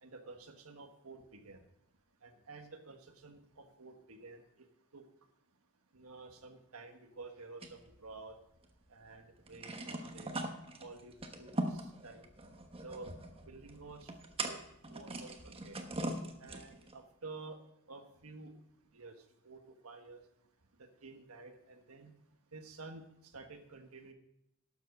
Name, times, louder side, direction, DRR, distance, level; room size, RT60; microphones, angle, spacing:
voice 1, 0.0-1.6 2.2-4.4 4.9-5.0 5.9-8.4 8.9-10.3 10.8-12.3 12.8-13.1 13.5-14.1 14.4-14.6 14.9-15.8 16.4-17.6 17.9-18.5 18.9-19.1 19.4-20.2 21.0-22.1 22.5-24.1, right 3 dB, 70° right, 5 dB, 1.5 m, -51 dB
sound 1, 7.6-8.8 9.1-9.2 9.4-16.9, right 2 dB, 25° right, 1.1 m, -41 dB
12.0 x 7.5 x 5.3 m, 0.81 s
head